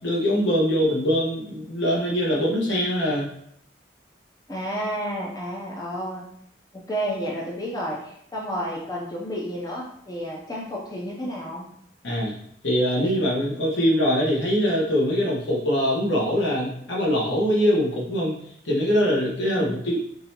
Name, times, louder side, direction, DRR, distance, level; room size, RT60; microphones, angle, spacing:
voice 1, 0.0-3.3 12.0-12.4 12.6-18.4 18.6-20.0, equal, 70° left, -4 dB, 1.4 m, -23 dB
voice 2, 4.5-6.3 6.7-11.7 19.4-19.8, equal, 20° left, -4 dB, 0.6 m, -31 dB
5.3 x 3.3 x 2.9 m, 0.71 s
head